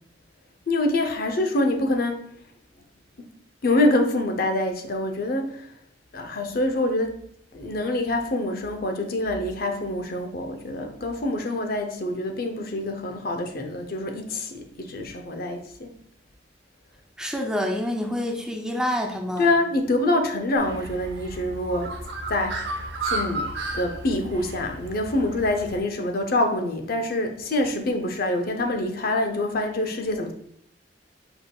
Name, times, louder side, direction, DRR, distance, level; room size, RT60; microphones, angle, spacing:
voice 1, 0.7-2.2 3.2-3.3 3.6-5.7 6.1-7.2 7.5-15.9 19.4-21.9 22.3-22.7 23.0-23.5 23.7-30.3, left 2 dB, 55° left, 0.6 m, -25 dB
voice 2, 17.2-19.5, left 1 dB, 5° right, 0.4 m, -27 dB
Bird, 20.6-25.8, right 2 dB, 65° right, 0.8 m, -33 dB
5.2 x 4.5 x 2.2 m
head